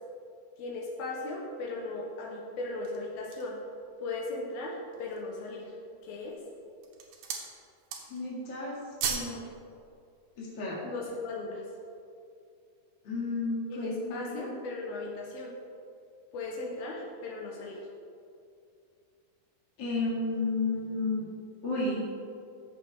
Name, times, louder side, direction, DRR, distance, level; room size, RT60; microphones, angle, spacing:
voice 1, 0.6-3.6 4.0-5.8 6.0-6.3 10.8-11.6 13.7-15.5 16.3-17.8, left 2 dB, 75° left, -2 dB, 2.9 m, -37 dB
sound 1, 2.6-3.6 4.2-4.3 4.8-5.3 6.0-6.4 6.7-7.5 7.8-8.3 8.6-9.4 9.7-9.8, right 6 dB, 80° right, 2.9 m, -36 dB
voice 2, 8.1-8.8 9.1-9.4 10.4-10.8 13.0-14.5 19.8-21.2 21.6-22.0, left 3 dB, 35° left, -6 dB, 2.4 m, -32 dB
15.0 x 6.4 x 3.5 m, 2.4 s
omnidirectional pair, 4.4 m